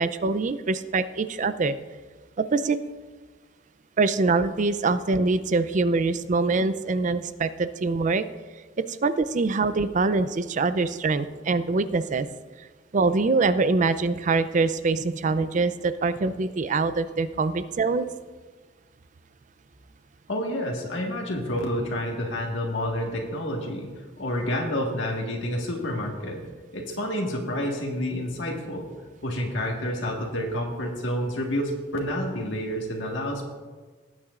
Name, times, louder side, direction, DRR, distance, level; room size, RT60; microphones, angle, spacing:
voice 1, 0.0-1.8 2.4-2.8 4.0-8.2 9.0-12.3 12.9-18.1, right 3 dB, 40° right, 13 dB, 0.4 m, -24 dB
voice 2, 20.3-26.4 26.7-28.9 29.2-33.4, left 1 dB, 75° left, -1 dB, 1.6 m, -29 dB
18.5 x 8.7 x 2.5 m, 1.4 s
head